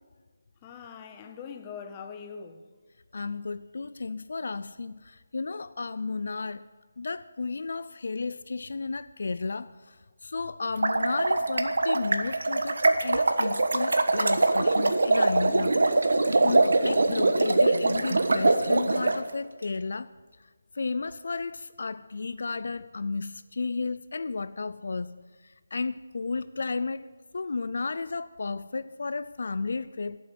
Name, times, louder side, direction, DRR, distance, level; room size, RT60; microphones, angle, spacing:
voice 1, 0.6-2.6, left 6 dB, 15° left, 0.6 m, -42 dB
voice 2, 3.1-6.6 7.0-9.9 10.2-15.8 16.4-20.1 20.8-25.1 25.4-27.0 27.3-30.2, left 4 dB, 50° left, 0.4 m, -33 dB
sound 1, 10.7-19.2, right 2 dB, 75° right, 1.2 m, -23 dB
13.5 x 7.7 x 9.6 m
hypercardioid pair, 180°, 0 cm